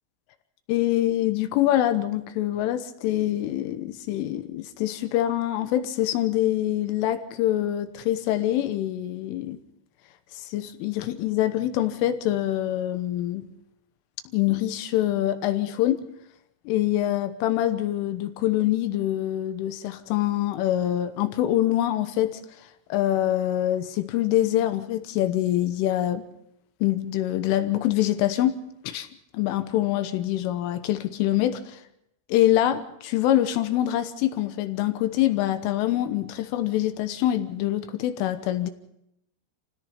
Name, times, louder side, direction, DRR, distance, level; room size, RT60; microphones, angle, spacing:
voice 1, 0.7-9.6 10.5-13.5 14.3-16.1 16.7-22.4 22.9-26.3 26.8-28.6 28.8-29.1 29.3-31.8 32.3-38.7, left 13 dB, 80° left, 3.4 m, -25 dB
28.0 x 17.0 x 5.6 m
omnidirectional pair, 5.9 m